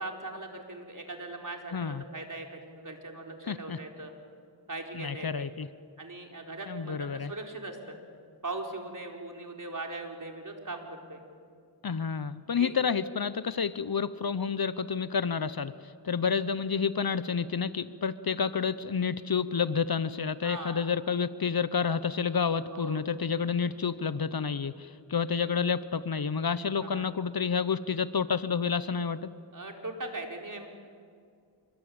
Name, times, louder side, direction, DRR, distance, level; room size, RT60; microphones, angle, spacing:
voice 1, 0.0-4.1 4.7-5.5 6.0-8.0 8.4-11.2 12.6-12.7 20.4-20.8 22.7-23.0 26.8-27.1 29.5-30.7, right 2 dB, 45° right, 2 dB, 4.7 m, -40 dB
voice 2, 1.7-2.0 3.5-3.8 4.9-5.7 6.7-7.3 11.8-15.7 16.0-29.3, left 6 dB, 55° left, 15 dB, 1.0 m, -29 dB
27.5 x 23.5 x 8.9 m, 2.3 s
cardioid pair, 50°, 44 cm